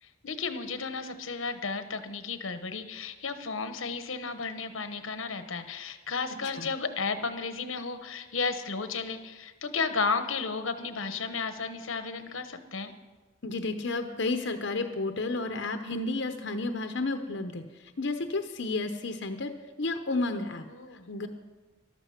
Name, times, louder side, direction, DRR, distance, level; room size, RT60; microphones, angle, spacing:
voice 1, 0.0-12.9 20.7-21.1, left 4 dB, 85° left, 9 dB, 1.1 m, -33 dB
voice 2, 13.4-19.5 19.8-20.6 21.1-21.3, left 3 dB, 60° left, 7 dB, 0.8 m, -31 dB
14.0 x 12.0 x 5.8 m, 1.2 s
head